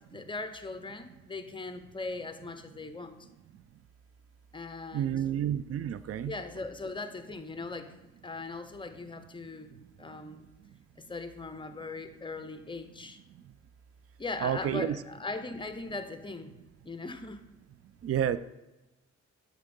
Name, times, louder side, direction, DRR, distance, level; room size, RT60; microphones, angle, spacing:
voice 1, 0.0-3.2 4.5-5.1 6.2-10.5 11.0-13.2 14.2-16.5 16.8-17.4, left 3 dB, 15° left, 9 dB, 0.7 m, -40 dB
voice 2, 4.9-6.3 14.4-15.0 18.0-18.4, right 10 dB, 50° right, 15 dB, 0.4 m, -30 dB
7.3 x 3.5 x 5.4 m, 1.0 s
cardioid pair, 70°, 30 cm